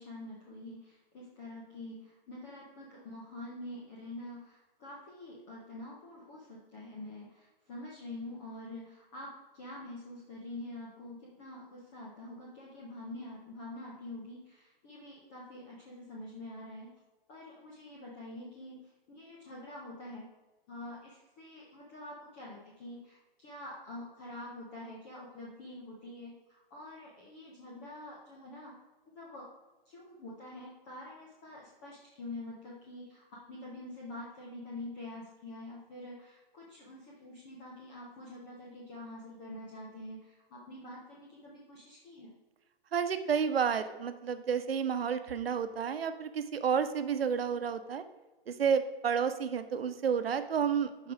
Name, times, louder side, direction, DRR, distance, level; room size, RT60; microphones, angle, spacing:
voice 1, 0.0-16.9 17.3-20.3 20.7-28.7 29.1-29.5 29.9-42.3, left 1 dB, 10° left, -4 dB, 0.4 m, -46 dB
voice 2, 42.9-48.0 48.5-51.1, right 7 dB, 80° right, 10 dB, 1.0 m, -31 dB
11.5 x 4.7 x 4.9 m, 1.2 s
hypercardioid pair, 160°, 29 cm